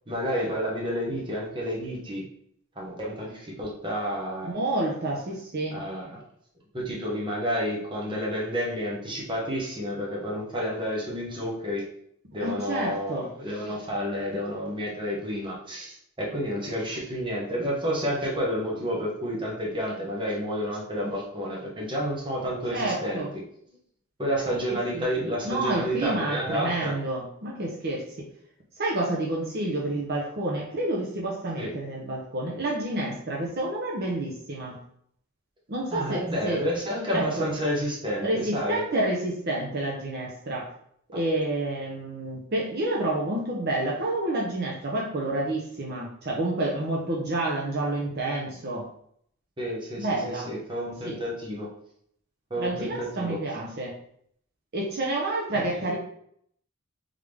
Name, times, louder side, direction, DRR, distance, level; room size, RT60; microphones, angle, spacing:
voice 1, 0.1-2.2 2.8-4.6 5.7-6.2 6.7-11.9 12.3-23.2 24.2-27.0 31.6-31.7 35.9-38.8 49.6-50.1 50.3-51.7 52.5-53.4 55.7-55.9, equal, 20° right, -3 dB, 1.0 m, -30 dB
voice 2, 4.4-5.8 12.4-13.3 22.7-23.3 24.9-25.1 25.4-28.0 28.8-34.8 35.7-36.6 37.1-37.5 38.2-40.7 41.1-48.9 50.0-50.5 51.0-51.2 52.6-53.9 54.7-55.9, right 2 dB, 50° right, -3 dB, 0.7 m, -29 dB
3.7 x 3.5 x 3.3 m, 0.68 s
head